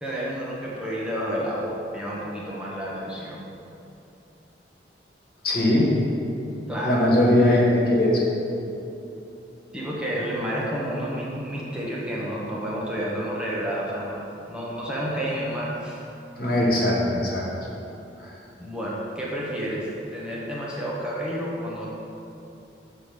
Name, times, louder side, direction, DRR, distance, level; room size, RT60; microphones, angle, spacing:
voice 1, 0.0-3.4 6.7-7.0 9.7-16.0 18.6-21.9, equal, 5° right, -6 dB, 1.1 m, -30 dB
voice 2, 5.4-5.9 6.8-8.2 16.3-17.4 18.2-18.3, left 1 dB, 55° left, -3 dB, 1.7 m, -20 dB
7.0 x 4.8 x 6.7 m, 2.8 s
head